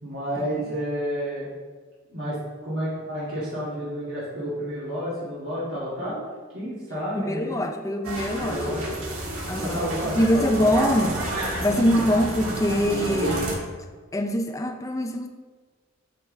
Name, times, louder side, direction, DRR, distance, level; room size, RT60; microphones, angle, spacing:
voice 1, 0.0-1.5 2.1-2.4 2.6-6.2 6.5-7.6 8.4-8.8 9.6-10.7, equal, 65° right, -10 dB, 2.3 m, -30 dB
voice 2, 7.1-8.8 9.5-11.2 11.6-13.4 14.1-15.3, equal, 15° left, 5 dB, 0.4 m, -24 dB
sound 1, 8.0-13.5, right 1 dB, 90° right, 1.6 m, -30 dB
9.1 x 4.8 x 3.2 m, 1.4 s
head